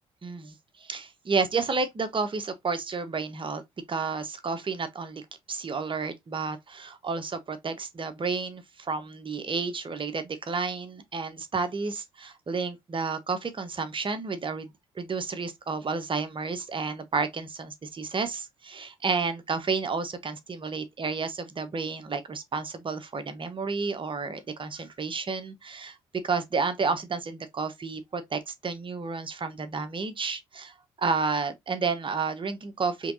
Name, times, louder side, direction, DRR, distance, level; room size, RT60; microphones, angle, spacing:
voice 1, 0.2-3.6 3.9-5.2 5.5-14.7 15.0-26.0 26.2-33.1, right 4 dB, 40° right, 1.1 m, -31 dB
4.4 x 3.5 x 2.7 m
hypercardioid pair, 50°, 13 cm